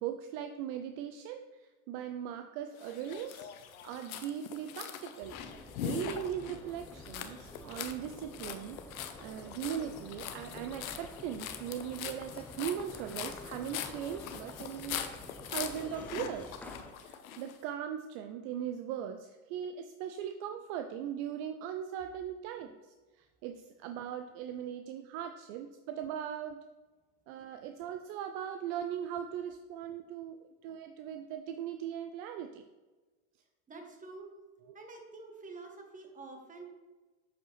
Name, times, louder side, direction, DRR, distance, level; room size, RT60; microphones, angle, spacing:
voice 1, 0.0-3.5 3.8-8.8 9.2-15.0 15.4-16.6 17.0-26.6 27.3-32.6 34.7-34.8, right 9 dB, 55° right, 7 dB, 0.5 m, -39 dB
sound 1, 2.8-17.6, left 9 dB, 80° left, 0.7 m, -42 dB
sound 2, 5.2-16.9, left 1 dB, 5° left, 0.5 m, -50 dB
voice 2, 33.7-34.3 34.7-36.7, right 3 dB, 20° right, 3 dB, 1.3 m, -48 dB
7.1 x 5.0 x 3.3 m, 1.2 s
hypercardioid pair, 95°, 41 cm